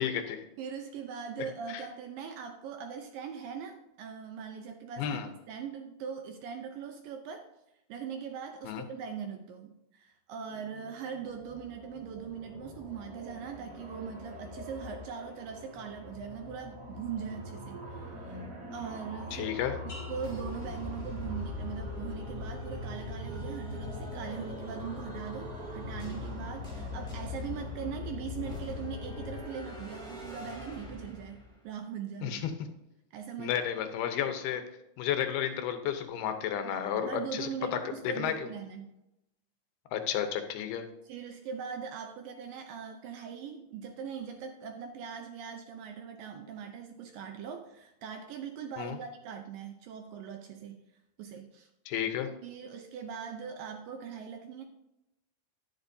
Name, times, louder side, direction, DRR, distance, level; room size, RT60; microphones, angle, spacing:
voice 1, 0.0-0.4 1.7-1.8 5.0-5.3 8.7-8.8 19.3-19.8 32.2-32.7 33.4-34.6 35.0-37.8 38.0-38.3 39.9-40.8 48.8-49.0 51.9-52.3, left 9 dB, 80° left, 7 dB, 2.7 m, -32 dB
voice 2, 0.6-7.5 7.9-18.4 18.7-19.5 20.1-32.5 33.1-33.6 36.6-38.9 41.0-50.8 51.2-51.7 52.4-54.6, right 7 dB, 80° right, 5 dB, 2.1 m, -41 dB
sound 1, 10.5-29.4, left 1 dB, 40° right, 1.2 m, -43 dB
sound 2, 19.9-21.7 22.2-22.6, left 1 dB, 30° left, 2.7 m, -53 dB
sound 3, 20.2-31.6, left 3 dB, ahead, 1.4 m, -42 dB
10.5 x 9.7 x 2.7 m, 0.89 s
omnidirectional pair, 4.6 m